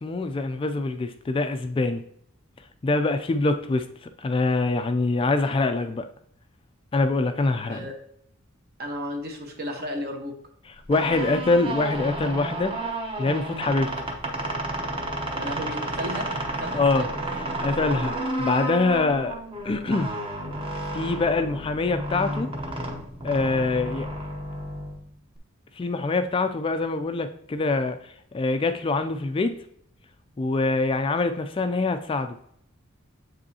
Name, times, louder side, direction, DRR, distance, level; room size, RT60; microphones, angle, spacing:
voice 1, 0.0-2.0 2.8-6.1 6.9-7.9 10.7-12.8 13.2-14.1 16.7-17.1 17.6-18.1 18.4-19.4 19.6-20.1 20.9-22.5 23.2-24.1 25.8-29.6 30.4-32.4, left 3 dB, 25° left, 0.3 m, -24 dB
voice 2, 8.8-10.3 15.3-16.3 16.6-17.1, equal, 50° right, 1.2 m, -33 dB
sound 1, 10.7-25.4, right 1 dB, 25° right, 0.9 m, -32 dB
7.5 x 5.2 x 2.8 m
head